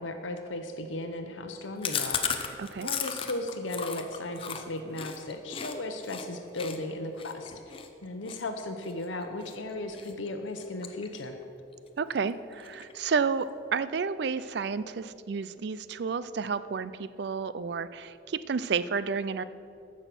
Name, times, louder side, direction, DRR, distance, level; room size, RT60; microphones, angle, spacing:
voice 1, 0.0-2.2 2.8-11.4, left 2 dB, 80° left, 6 dB, 0.8 m, -36 dB
Chewing mastication, 1.8-5.7 6.1-6.3 6.6-9.6 9.9-10.3 10.6-11.4 11.7-11.8 12.1-12.2 12.5-13.1, left 7 dB, 30° left, 0.7 m, -35 dB
voice 2, 2.6-2.9 12.0-19.4, right 5 dB, 60° right, 15 dB, 0.4 m, -31 dB
14.5 x 6.3 x 6.0 m, 2.7 s
head